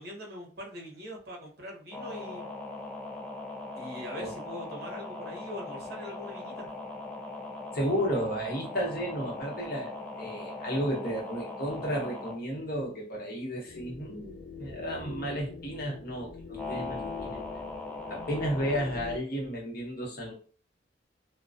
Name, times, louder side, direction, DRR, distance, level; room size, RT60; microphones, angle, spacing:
voice 1, 0.0-2.4 3.8-6.7, equal, 55° right, -2 dB, 0.9 m, -42 dB
sound 1, 1.9-12.4 16.6-18.8, left 2 dB, 5° left, 0.3 m, -40 dB
voice 2, 7.7-17.4 18.1-20.3, equal, 50° left, -2 dB, 0.8 m, -33 dB
sound 2, 13.7-19.2, left 4 dB, 85° left, 0.5 m, -44 dB
2.4 x 2.1 x 2.5 m, 0.42 s
head